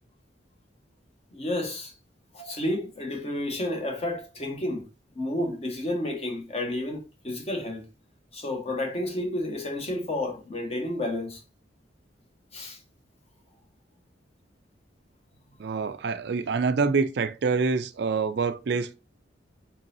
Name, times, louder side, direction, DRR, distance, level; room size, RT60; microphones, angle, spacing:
voice 1, 1.3-1.9 2.3-4.9 5.1-7.8 8.3-11.4 12.5-12.8 15.7-15.8, left 1 dB, 35° left, 1.1 m, -31 dB
voice 2, 15.6-19.0, right 4 dB, 65° right, 0.4 m, -26 dB
3.9 x 3.8 x 2.6 m
head